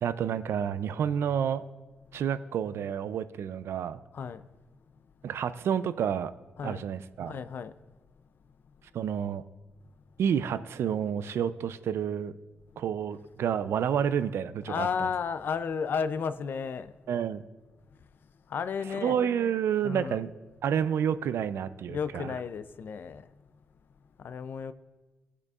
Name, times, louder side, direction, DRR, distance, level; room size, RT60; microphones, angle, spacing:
voice 1, 0.0-1.6 2.1-4.0 5.2-6.3 6.6-7.4 8.9-9.4 10.2-12.3 12.8-15.1 17.1-17.4 19.0-20.3 20.6-22.3, right 8 dB, 75° right, 0.4 m, -29 dB
voice 2, 7.3-7.7 14.7-16.9 18.5-19.2 19.8-20.2 21.9-23.2 24.2-24.7, left 6 dB, 50° left, 0.4 m, -33 dB
18.0 x 6.7 x 2.4 m
wide cardioid pair, 175°, 4 cm